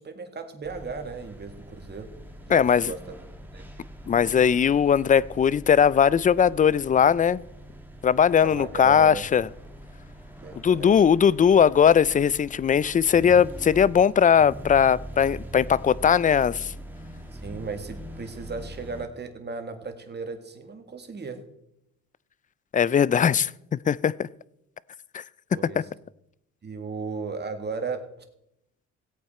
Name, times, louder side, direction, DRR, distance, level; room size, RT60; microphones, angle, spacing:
voice 1, 0.0-2.1 2.5-3.0 3.5-3.6 8.4-9.3 10.4-10.9 17.3-21.4 25.5-25.9 26.6-28.0, right 4 dB, 35° right, 1.9 m, -36 dB
sound 1, 0.6-19.0, equal, 5° right, 1.6 m, -42 dB
voice 2, 2.5-2.9 4.1-7.4 8.0-9.5 10.6-16.7 22.7-24.3 25.1-25.2, left 7 dB, 25° left, 0.4 m, -20 dB
17.0 x 8.6 x 4.3 m
cardioid pair, 90°, 30 cm